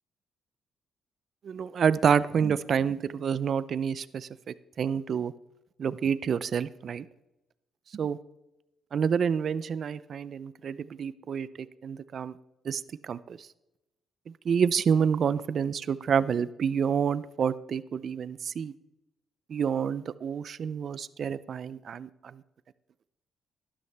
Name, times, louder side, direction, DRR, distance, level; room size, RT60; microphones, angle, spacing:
voice 1, 1.4-4.3 4.8-5.3 5.8-7.1 7.9-8.2 8.9-11.5 11.8-12.3 12.7-13.4 14.5-18.7 19.5-22.1, right 7 dB, 55° right, 16 dB, 0.4 m, -28 dB
12.0 x 11.0 x 3.4 m, 0.93 s
cardioid pair, 90°, 0 cm